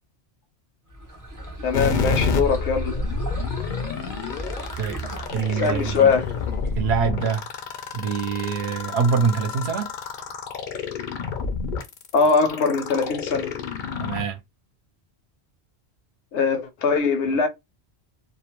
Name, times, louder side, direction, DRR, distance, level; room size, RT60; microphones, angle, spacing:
sound 1, 0.9-6.9, right 1 dB, 25° right, 0.4 m, -36 dB
voice 1, 1.6-3.0 5.6-6.2 12.1-13.5 16.3-17.5, left 5 dB, 80° left, 0.9 m, -21 dB
sound 2, 1.7-14.2, left 5 dB, 60° left, 0.6 m, -29 dB
voice 2, 5.3-6.1 6.8-7.4 7.9-9.9 14.0-14.4, right 6 dB, 70° right, 0.8 m, -24 dB
2.4 x 2.0 x 2.9 m
omnidirectional pair, 1.2 m